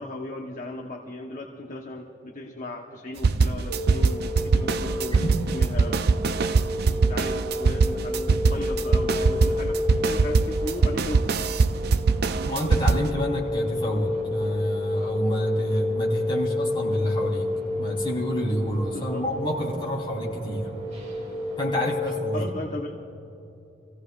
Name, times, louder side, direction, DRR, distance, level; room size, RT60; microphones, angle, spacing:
voice 1, 0.0-6.0 6.8-9.8 10.0-11.5 18.9-19.2 22.3-22.9, left 2 dB, 40° left, 0 dB, 0.9 m, -36 dB
sound 1, 3.2-13.1, right 4 dB, 55° right, 0.4 m, -22 dB
sound 2, 3.7-22.0, left 1 dB, 35° right, 3.7 m, -31 dB
voice 2, 5.1-5.4 12.4-17.5 17.8-20.8 21.6-22.5, equal, 25° left, -4 dB, 3.3 m, -28 dB
28.0 x 16.0 x 2.4 m, 2.9 s
head